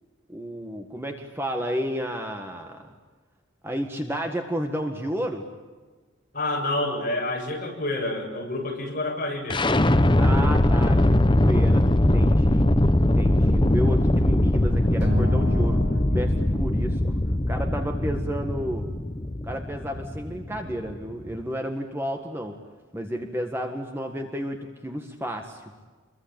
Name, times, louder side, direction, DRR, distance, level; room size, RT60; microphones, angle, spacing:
voice 1, 0.3-2.9 3.6-5.5 10.2-12.7 13.0-15.8 16.1-17.0 17.5-18.9 19.4-22.6 22.9-25.6, equal, 10° right, 4 dB, 1.7 m, -31 dB
voice 2, 6.3-9.7, left 2 dB, 40° left, 0 dB, 7.6 m, -28 dB
sound 1, 9.5-21.4, left 1 dB, 25° left, 0.9 m, -21 dB
Acoustic guitar, 15.0-17.4, equal, 65° right, 5.7 m, -35 dB
28.0 x 23.0 x 8.9 m, 1.3 s
head